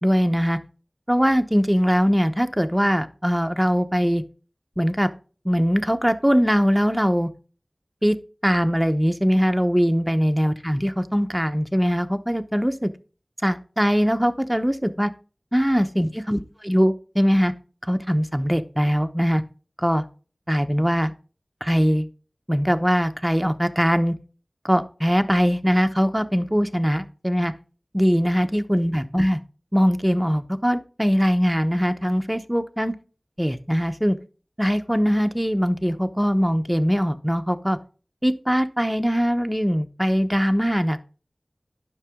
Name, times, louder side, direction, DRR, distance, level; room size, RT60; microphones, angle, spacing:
voice 1, 0.0-0.6 1.1-4.2 4.8-5.1 5.4-7.3 8.0-8.2 8.4-12.9 13.4-15.1 15.5-17.5 17.9-19.4 19.8-20.0 20.5-21.1 21.6-22.1 22.5-24.2 24.6-27.5 27.9-29.4 29.7-32.9 33.4-34.2 34.6-37.8 38.2-41.0, equal, 10° right, 8 dB, 0.9 m, -21 dB
10.5 x 6.0 x 3.6 m, 0.37 s
wide cardioid pair, 40°, 0 cm